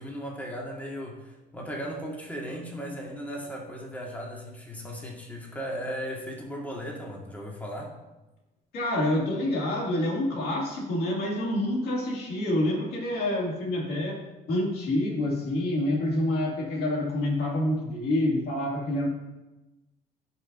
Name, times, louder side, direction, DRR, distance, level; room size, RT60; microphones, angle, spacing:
voice 1, 0.0-7.9, equal, 10° left, -2 dB, 1.8 m, -36 dB
voice 2, 8.7-14.2 14.5-19.1, left 1 dB, 70° left, -1 dB, 2.4 m, -27 dB
13.5 x 5.5 x 2.7 m, 1.0 s
cardioid pair, 110°, 17 cm